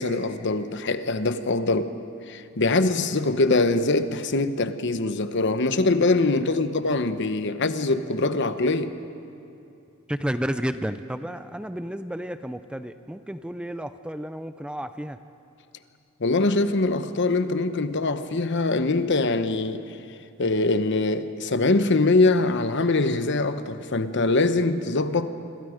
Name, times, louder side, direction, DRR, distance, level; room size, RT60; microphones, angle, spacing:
voice 1, 0.0-1.9 2.3-9.0 16.2-20.0 20.4-25.4, left 2 dB, 55° left, 1.0 m, -23 dB
voice 2, 10.1-15.2, equal, 5° right, 0.5 m, -32 dB
28.0 x 25.5 x 5.1 m
head